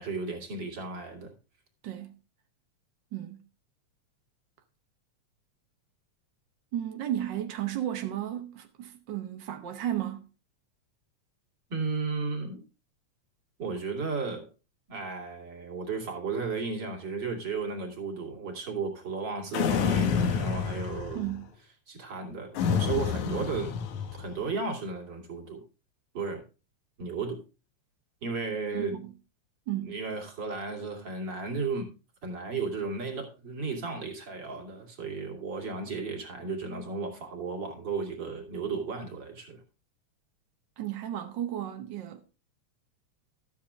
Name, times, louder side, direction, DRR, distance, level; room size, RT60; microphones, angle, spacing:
voice 1, 0.0-1.3 11.7-12.6 13.6-14.5 14.9-21.2 21.9-23.8 24.1-25.6 26.1-26.4 27.0-27.4 28.2-29.0 29.8-31.9 32.2-39.6, right 4 dB, 40° right, 2.9 m, -34 dB
voice 2, 1.8-2.2 3.1-3.4 6.7-10.3 21.1-21.5 28.7-29.1 29.7-29.9 40.8-42.2, right 12 dB, 70° right, 1.0 m, -34 dB
sound 1, 19.5-21.4 22.6-24.4, left 6 dB, 80° left, 2.6 m, -28 dB
12.5 x 8.5 x 3.6 m
omnidirectional pair, 3.3 m